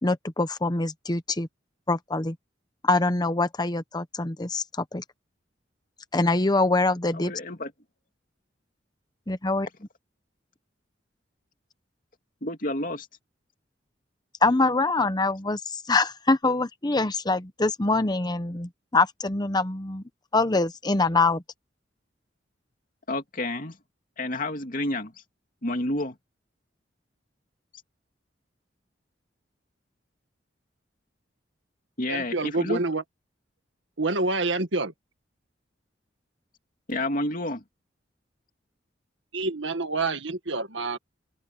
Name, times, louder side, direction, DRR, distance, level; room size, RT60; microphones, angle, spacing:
voice 1, 0.0-1.5 1.9-2.3 2.8-4.6 4.9-5.0 6.1-7.3 9.3-9.7 14.4-20.0 20.3-21.4, left 3 dB, 20° left, 0.9 m, -24 dB
voice 2, 7.1-7.7 12.4-13.1 23.1-23.8 24.2-25.2 25.6-26.2 32.0-32.8 36.9-37.6, left 1 dB, 50° left, 2.6 m, -30 dB
voice 3, 32.1-33.0 34.0-34.9 39.3-41.0, right 3 dB, 90° right, 1.9 m, -27 dB
open air
head